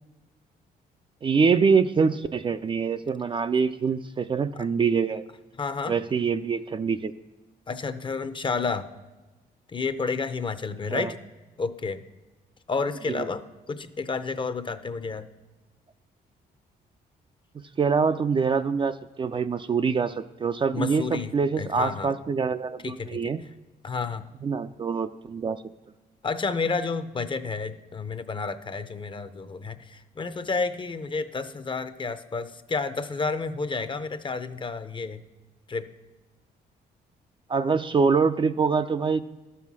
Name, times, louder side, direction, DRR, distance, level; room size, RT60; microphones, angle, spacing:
voice 1, 1.2-5.3 5.9-7.1 10.9-11.1 13.1-13.3 17.8-23.4 24.4-25.6 37.5-39.2, right 5 dB, 30° right, 10 dB, 0.4 m, -25 dB
voice 2, 5.6-5.9 7.7-8.9 9.7-11.2 11.6-12.0 12.7-15.3 20.7-21.3 21.6-22.1 22.8-23.2 23.8-24.3 26.2-35.2 35.7-35.9, left 4 dB, 30° left, 11 dB, 0.6 m, -30 dB
12.0 x 5.6 x 6.1 m, 1.2 s
cardioid pair, 100°, 17 cm